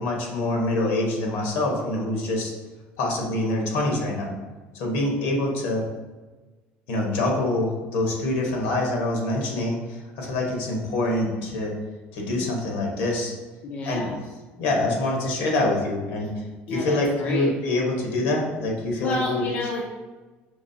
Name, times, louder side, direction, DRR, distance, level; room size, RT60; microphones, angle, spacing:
voice 1, 0.0-2.5 3.0-4.3 4.7-5.9 6.9-11.7 12.1-13.4 13.9-14.0 14.6-19.4, left 2 dB, 80° left, -1 dB, 1.3 m, -25 dB
voice 2, 13.6-14.2 16.7-17.5 18.9-19.8, left 2 dB, 40° left, -2 dB, 0.6 m, -29 dB
6.0 x 3.1 x 2.8 m, 1.3 s
cardioid pair, 150°, 4 cm